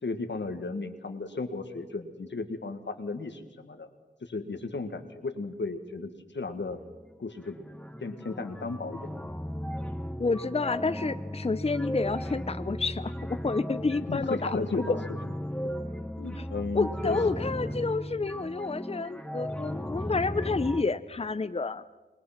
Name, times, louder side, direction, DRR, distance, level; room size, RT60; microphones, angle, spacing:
voice 1, 0.0-3.9 4.2-6.8 7.2-7.5 8.0-9.1 14.1-15.0 16.2-17.2, left 3 dB, 85° left, 7 dB, 1.7 m, -34 dB
sound 1, 6.7-7.1 7.4-20.8, equal, 5° left, 1.2 m, -36 dB
voice 2, 10.2-15.0 16.7-21.8, left 3 dB, 35° left, 12 dB, 0.6 m, -29 dB
26.5 x 20.5 x 5.9 m, 1.2 s
wide cardioid pair, 45°, 18 cm